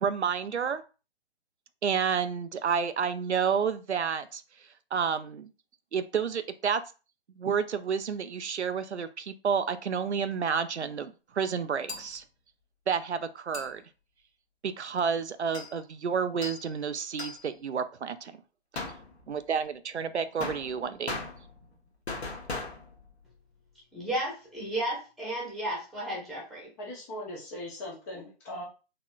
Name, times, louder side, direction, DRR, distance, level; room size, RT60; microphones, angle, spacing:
voice 1, 0.0-0.8 1.8-4.4 4.9-5.5 5.9-6.8 7.4-12.2 12.9-13.8 14.6-18.4 18.7-18.8 19.3-21.2, right 6 dB, 85° right, 0.5 m, -30 dB
sound 1, 11.9-12.2 13.5-13.7 15.5-15.8 16.4-16.7 17.2-17.5 18.8-19.4 20.4-21.7 22.1-23.1, left 3 dB, 75° left, 1.2 m, -38 dB
voice 2, 23.9-26.7, right 1 dB, ahead, 1.1 m, -33 dB
voice 3, 26.8-28.6, left 1 dB, 15° left, 0.7 m, -39 dB
4.0 x 2.8 x 2.4 m
figure-of-eight pair, 135°, 33 cm